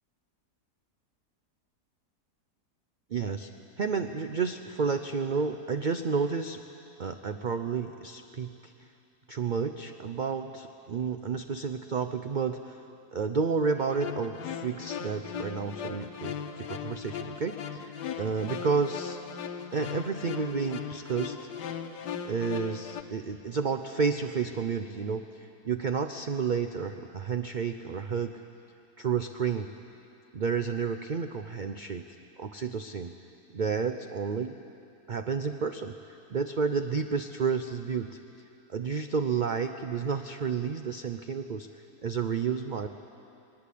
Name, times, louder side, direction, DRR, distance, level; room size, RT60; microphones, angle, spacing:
voice 1, 3.1-3.5 3.8-6.6 7.0-8.7 9.3-12.8 13.1-17.9 18.2-19.2 19.7-21.4 22.2-28.3 29.0-29.7 30.3-32.1 32.4-33.1 33.5-34.6 35.1-38.1 38.7-41.7 42.0-42.9, right 5 dB, 65° right, 8 dB, 0.4 m, -31 dB
sound 1, 13.8-23.0, left 7 dB, 90° left, 1.5 m, -38 dB
21.0 x 19.0 x 8.5 m, 2.7 s
omnidirectional pair, 1.7 m